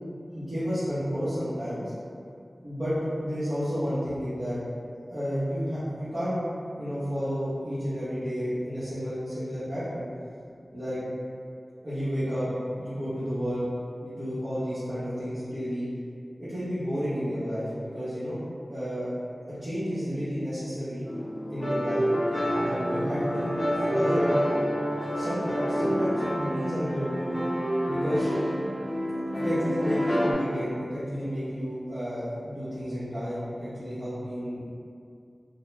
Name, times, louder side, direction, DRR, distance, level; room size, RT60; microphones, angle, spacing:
voice 1, 0.3-1.9 2.6-4.6 5.1-6.4 6.8-10.1 10.7-11.0 11.8-12.5 12.8-13.6 14.0-15.9 16.4-17.6 17.9-18.4 18.7-19.1 19.6-21.1 21.5-22.0 22.6-23.6 23.9-24.3 25.1-27.1 27.8-28.3 29.3-34.7, equal, 50° right, -16 dB, 0.9 m, -31 dB
sound 1, 21.1-30.3, equal, 30° left, 0.5 m, -28 dB
2.3 x 2.1 x 3.1 m, 2.3 s
wide cardioid pair, 65°, 0 cm